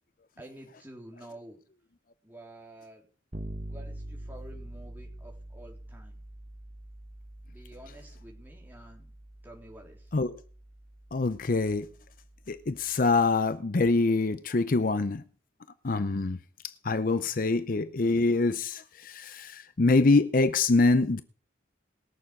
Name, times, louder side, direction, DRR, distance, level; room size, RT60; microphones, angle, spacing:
voice 1, 0.4-1.6 2.2-3.1 3.6-6.2 7.5-9.1 9.4-10.1 14.5-14.6, right 1 dB, 10° right, 3.5 m, -49 dB
Bass guitar, 3.3-13.0, right 1 dB, 40° right, 1.4 m, -45 dB
voice 2, 11.1-11.9 12.5-15.2 15.8-16.4 16.8-21.2, left 3 dB, 45° left, 0.6 m, -25 dB
20.5 x 7.1 x 6.0 m
head